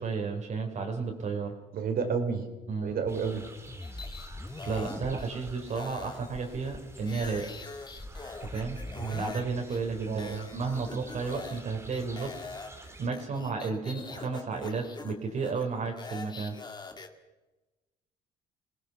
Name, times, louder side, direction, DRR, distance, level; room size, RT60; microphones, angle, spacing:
voice 1, 0.0-1.6 2.7-3.0 4.6-7.5 8.4-8.8 9.1-12.3 13.0-16.5, right 4 dB, 45° right, 2 dB, 3.5 m, -32 dB
voice 2, 1.7-2.4 2.8-3.5 9.0-9.2 10.1-10.5, right 6 dB, 60° right, 7 dB, 3.8 m, -31 dB
sound 1, 3.1-13.1, right 2 dB, 15° right, 2.5 m, -49 dB
sound 2, 3.7-5.6 5.9-6.0 6.3-6.8 7.2-9.3, left 2 dB, 10° left, 1.3 m, -42 dB
sound 3, 3.8-5.3 5.7-9.4 9.7-9.8 10.2-11.6 11.9-17.1, left 4 dB, 25° left, 2.2 m, -44 dB
27.0 x 19.0 x 5.9 m, 1.2 s
cardioid pair, 110°, 17 cm